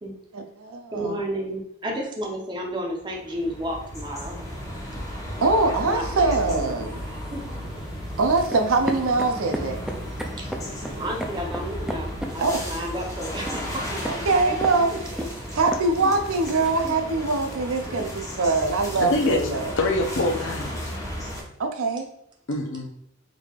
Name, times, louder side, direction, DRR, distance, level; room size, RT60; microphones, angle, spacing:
voice 1, 0.3-1.2 5.4-7.0 8.2-9.8 12.4-12.7 14.0-15.0 15.5-19.7 21.6-22.1, right 3 dB, 75° right, 6 dB, 0.5 m, -23 dB
voice 2, 0.9-4.4 5.7-7.4 10.4-10.5 11.0-14.6 14.9-15.0 16.0-16.1 16.8-16.9 17.9-18.1, equal, 20° right, 0 dB, 0.7 m, -32 dB
sound 1, 2.9-21.4, equal, 15° left, 0.8 m, -34 dB
sound 2, 6.9-16.7, equal, ahead, 0.3 m, -36 dB
voice 3, 19.0-19.4 19.8-20.9 22.5-22.9, left 2 dB, 65° left, 3 dB, 0.6 m, -25 dB
3.7 x 3.3 x 2.4 m, 0.75 s
head